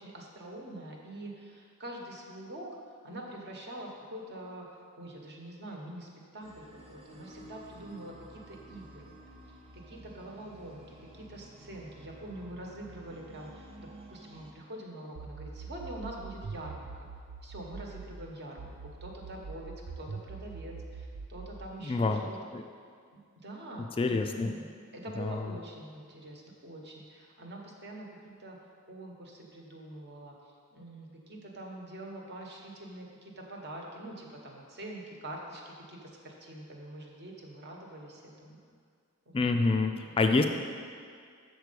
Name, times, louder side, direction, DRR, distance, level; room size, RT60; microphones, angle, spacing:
voice 1, 0.0-2.7 3.0-4.6 5.0-9.1 9.7-17.1 17.4-18.7 19.0-22.4 23.4-28.6 28.9-30.3 30.7-38.6 39.3-39.5 40.0-40.2, right 1 dB, 50° right, -1 dB, 1.1 m, -45 dB
sound 1, 6.4-14.5, right 1 dB, 25° right, 0.6 m, -52 dB
sound 2, 15.2-18.2 18.6-21.6, right 5 dB, 70° right, 0.4 m, -43 dB
voice 2, 21.8-22.6 24.0-24.6 25.2-25.5 39.3-40.4, left 3 dB, 25° left, 5 dB, 0.3 m, -27 dB
6.5 x 4.7 x 6.7 m, 2.1 s
head